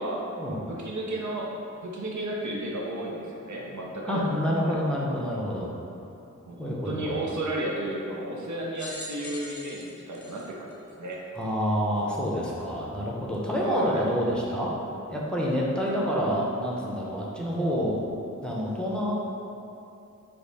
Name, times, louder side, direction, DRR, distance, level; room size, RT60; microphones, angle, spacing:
voice 1, 0.7-1.5 1.8-4.8 6.5-11.2 13.6-14.0, right 1 dB, 65° right, -3 dB, 0.6 m, -33 dB
voice 2, 4.1-5.7 6.6-7.2 11.3-14.7 15.1-18.0 18.4-19.1, equal, 5° left, -5 dB, 0.6 m, -28 dB
sound 1, 8.7-11.4 12.1-12.2 13.3-13.4, left 2 dB, 65° left, 0.6 m, -42 dB
5.1 x 2.0 x 4.0 m, 2.8 s
wide cardioid pair, 70°, 31 cm